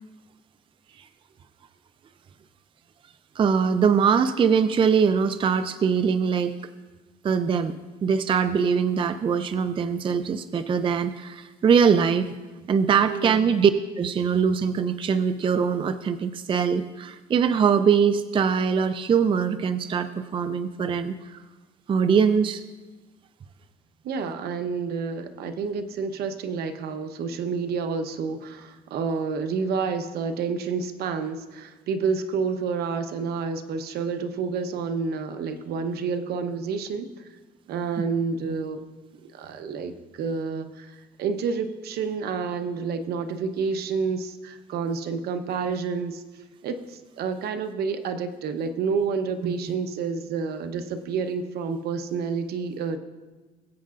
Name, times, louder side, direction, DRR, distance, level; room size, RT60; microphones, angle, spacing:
voice 1, 3.4-6.5 7.2-7.7 8.0-12.3 12.7-13.7 14.0-21.4 21.9-22.6 38.5-38.6 49.4-49.5, right 6 dB, 30° right, 11 dB, 0.4 m, -22 dB
voice 2, 13.1-13.5 24.0-37.1 37.7-38.8 39.3-46.2 46.6-53.0, right 5 dB, 70° right, 8 dB, 0.9 m, -29 dB
21.0 x 8.5 x 2.5 m, 1.2 s
cardioid pair, 110°, 17 cm